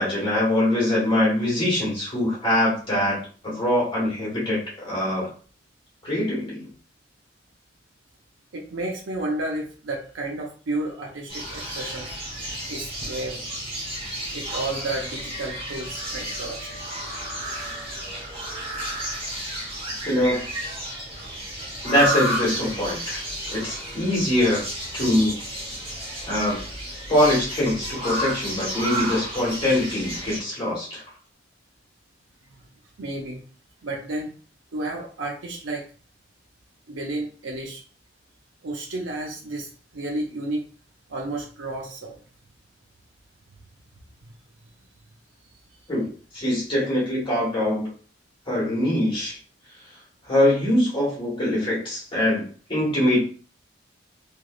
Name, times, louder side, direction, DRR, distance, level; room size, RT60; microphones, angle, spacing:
voice 1, 0.0-5.3 6.0-6.7 20.0-20.4 21.8-23.2 23.5-24.7 24.9-25.4 26.3-26.6 27.1-31.0 45.9-47.9 48.5-49.4 50.3-52.4 52.7-53.2, left 1 dB, 30° left, -6 dB, 1.7 m, -23 dB
voice 2, 8.5-12.2 12.7-13.5 14.3-16.8 32.5-32.6 33.0-33.4 33.8-34.3 34.7-35.8 36.9-37.8 38.6-40.7 41.1-42.2, right 2 dB, 80° right, -1 dB, 0.6 m, -32 dB
bird market in jogjakarta, 11.3-30.4, right 1 dB, 30° right, 1.0 m, -32 dB
3.4 x 3.0 x 2.4 m, 0.40 s
head